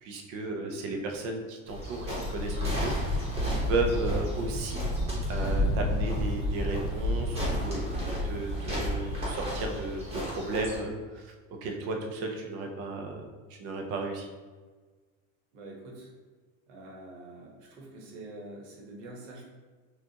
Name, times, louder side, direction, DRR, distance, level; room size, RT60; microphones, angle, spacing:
voice 1, 0.0-4.9 5.3-7.8 8.2-11.3 11.6-13.2 13.5-14.3, right 3 dB, 40° right, 3 dB, 0.6 m, -34 dB
voice 2, 0.5-1.0 15.5-16.1 16.7-19.5, right 2 dB, 80° right, -2 dB, 1.3 m, -46 dB
sound 1, 1.7-10.8, left 1 dB, 15° right, 1.0 m, -30 dB
6.2 x 2.4 x 2.8 m, 1.4 s
cardioid pair, 165°, 39 cm